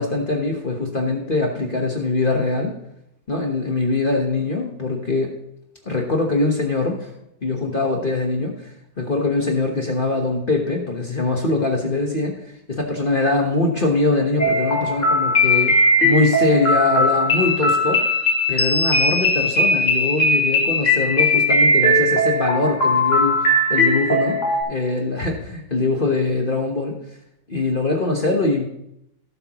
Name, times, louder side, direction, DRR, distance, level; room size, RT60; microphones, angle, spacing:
voice 1, 0.0-2.7 3.3-5.3 5.8-7.1 7.4-8.7 9.0-12.3 12.7-15.7 16.0-18.0 18.5-23.4 23.7-24.4 24.7-27.0 27.5-28.6, left 2 dB, 35° left, 1 dB, 1.3 m, -22 dB
sound 1, 14.4-24.6, left 1 dB, 50° left, 2.2 m, -18 dB
17.5 x 7.8 x 3.1 m, 0.78 s
omnidirectional pair, 1.7 m